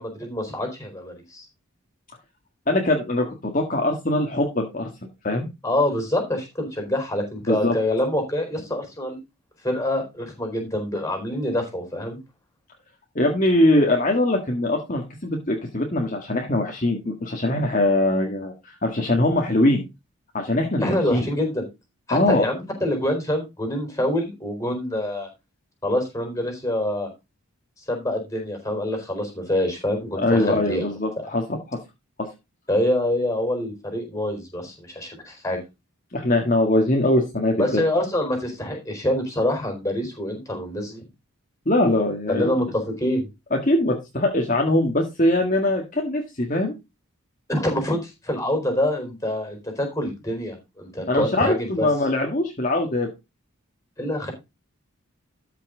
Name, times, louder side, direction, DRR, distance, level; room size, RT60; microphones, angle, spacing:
voice 1, 0.0-1.5 5.6-9.2 9.6-12.2 20.8-21.6 22.1-25.3 25.8-27.1 27.8-30.9 31.2-31.3 32.7-35.6 37.6-41.0 42.3-43.3 47.5-51.9 54.0-54.3, left 1 dB, 15° left, 4 dB, 4.2 m, -26 dB
voice 2, 2.7-4.9 5.2-5.5 7.5-7.7 13.2-19.8 20.3-21.3 22.1-22.5 30.2-31.8 32.2-32.3 36.1-37.8 41.7-42.5 43.5-46.8 51.1-53.1, left 1 dB, 35° left, 1 dB, 1.7 m, -22 dB
13.0 x 5.8 x 3.8 m, 0.24 s
head